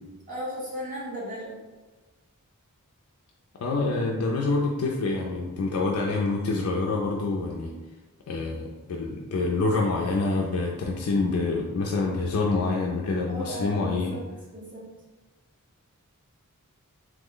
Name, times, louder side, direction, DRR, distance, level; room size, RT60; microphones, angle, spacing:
voice 1, 0.3-1.6 13.2-14.2 14.5-14.8, equal, 40° right, -6 dB, 1.0 m, -35 dB
voice 2, 3.6-7.7 8.3-14.2, left 3 dB, 70° left, -1 dB, 0.4 m, -26 dB
3.0 x 2.0 x 3.7 m, 1.2 s
head